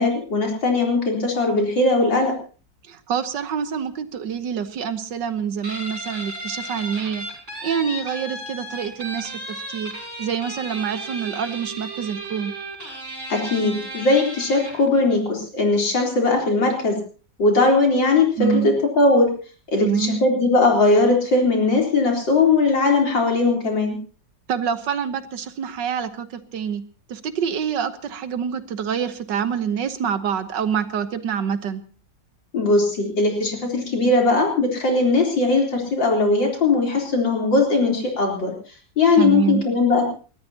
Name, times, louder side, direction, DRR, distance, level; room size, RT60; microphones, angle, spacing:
voice 1, 0.0-2.3 13.3-17.0 17.4-18.3 18.6-19.3 19.7-24.0 32.5-38.5 39.0-40.1, left 3 dB, 85° left, 0 dB, 4.5 m, -19 dB
voice 2, 2.9-7.2 7.6-9.9 10.2-12.5 18.4-18.7 19.8-20.2 24.5-26.8 27.1-31.8 39.2-39.6, right 7 dB, 75° right, 10 dB, 1.7 m, -26 dB
Guitar, 5.6-14.9, right 1 dB, 40° right, 6.8 m, -34 dB
30.0 x 13.5 x 2.9 m, 0.39 s
omnidirectional pair, 2.0 m